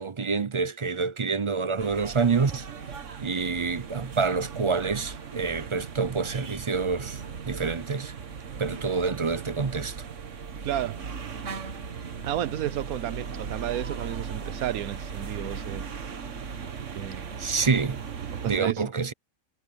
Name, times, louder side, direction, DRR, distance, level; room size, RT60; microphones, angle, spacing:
voice 1, 0.0-2.7 3.2-8.1 8.6-10.0 17.4-18.0 18.5-19.1, right 5 dB, 40° right, 0.4 m, -27 dB
sound 1, 1.8-18.6, right 6 dB, 60° right, 1.7 m, -38 dB
voice 2, 10.6-11.0 12.2-15.9 16.9-17.4 18.3-18.9, right 12 dB, 85° right, 1.2 m, -32 dB
omnidirectional pair, 1.5 m